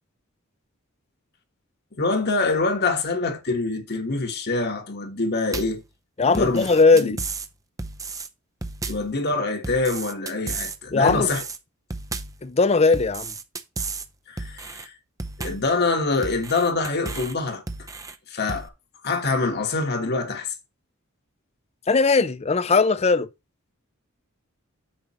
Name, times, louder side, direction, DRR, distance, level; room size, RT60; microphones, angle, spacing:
voice 1, 2.0-5.8 6.3-6.7 7.0-7.2 8.9-11.4 14.3-14.9 15.4-17.6 18.3-18.7 19.0-20.5, left 3 dB, 50° left, 1.4 m, -25 dB
sound 1, 5.5-5.8 6.3-7.5 7.8-8.3 8.6-9.1 9.6-10.8 11.1-11.6 11.9-12.4 12.9-14.1 14.4-14.9 15.2-15.7 16.2-17.3 17.7-18.1 18.5-18.7, right 3 dB, 15° right, 0.6 m, -33 dB
voice 2, 6.2-7.2 10.9-11.3 12.4-13.3 21.9-23.3, left 4 dB, 30° left, 0.5 m, -19 dB
8.8 x 6.6 x 3.0 m
head